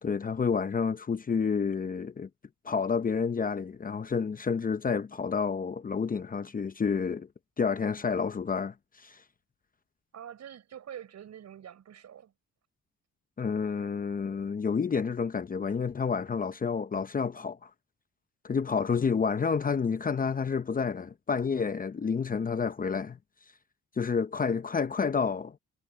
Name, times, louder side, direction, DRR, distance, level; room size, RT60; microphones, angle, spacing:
voice 1, 0.0-2.3 2.6-7.3 7.6-9.2 13.4-17.7 18.4-23.2 24.0-25.6, left 5 dB, 30° left, 0.7 m, -29 dB
voice 2, 10.1-12.3 18.8-19.1, right 9 dB, 60° right, 5.6 m, -46 dB
cardioid pair, 90°, 30 cm